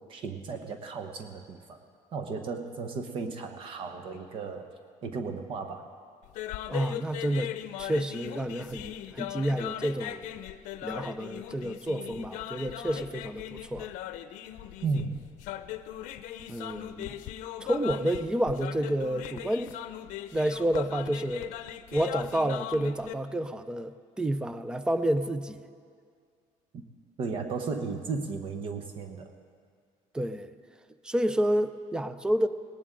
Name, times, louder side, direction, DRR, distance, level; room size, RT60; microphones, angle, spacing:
voice 1, 0.1-1.8 2.1-4.7 5.0-5.9 14.8-15.2 26.7-26.8 27.2-29.3, right 4 dB, 45° right, 6 dB, 0.9 m, -34 dB
sound 1, 6.2-23.1, left 12 dB, 80° left, 0.6 m, -39 dB
voice 2, 6.7-7.5 7.8-10.3 10.8-13.9 16.5-17.2 17.6-19.8 20.3-21.5 21.9-25.7 30.1-30.5 31.0-32.5, right 1 dB, 5° right, 12 dB, 0.4 m, -29 dB
18.5 x 18.5 x 3.8 m, 2.2 s
cardioid pair, 165°, 13 cm